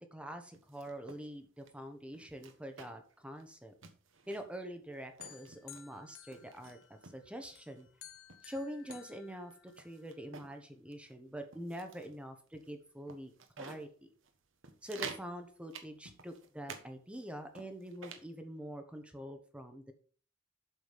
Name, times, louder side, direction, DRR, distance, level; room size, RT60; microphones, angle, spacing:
voice 1, 0.0-3.7 4.3-6.8 7.0-7.9 8.4-13.3 13.6-14.1 14.8-19.9, equal, 5° right, 6 dB, 1.2 m, -45 dB
sound 1, 0.5-1.2 1.6-1.7 2.1-3.1 3.4-3.5 3.8-4.6 5.0-5.9 6.3-7.2 7.8-7.9 8.3-10.6 10.9-11.1 11.5-12.2 12.6-12.7 13.1-13.9 14.2-14.3 14.6-15.3 15.7-16.9 17.1-18.3, right 5 dB, 70° right, 1.3 m, -49 dB
sound 2, 5.2-7.1 7.6-10.1, left 11 dB, 85° left, 1.0 m, -55 dB
8.1 x 6.4 x 5.3 m, 0.43 s
head